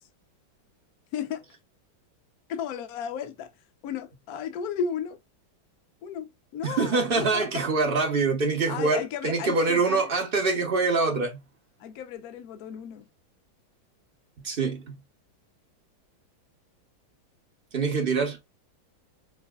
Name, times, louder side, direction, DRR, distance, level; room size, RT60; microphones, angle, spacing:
voice 1, 1.1-1.5 2.5-3.5 3.8-5.2 6.0-7.6 8.7-10.1 11.8-13.1, left 7 dB, 60° left, 1.1 m, -34 dB
voice 2, 6.6-11.4 14.4-15.0 17.7-18.4, right 4 dB, 55° right, 0.6 m, -25 dB
5.5 x 2.8 x 2.3 m
omnidirectional pair, 2.1 m